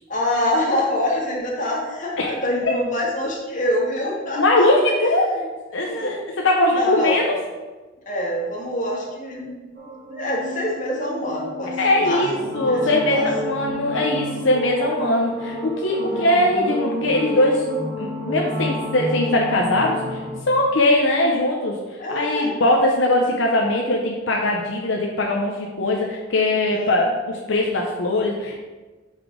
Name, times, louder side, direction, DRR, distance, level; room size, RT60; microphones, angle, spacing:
voice 1, 0.1-4.7 5.3-5.4 5.7-6.2 6.7-7.2 8.1-9.6 10.1-12.2 12.6-13.2 16.1-16.3 22.0-22.5 26.7-27.0, left 1 dB, 45° left, -3 dB, 1.8 m, -25 dB
voice 2, 4.4-5.3 5.7-7.3 11.7-17.6 18.0-20.2 20.5-21.7 22.1-28.6, left 1 dB, 80° left, 0 dB, 0.8 m, -21 dB
sound 1, 9.8-20.3, equal, 45° right, 2.0 m, -30 dB
5.5 x 5.1 x 5.1 m, 1.2 s
head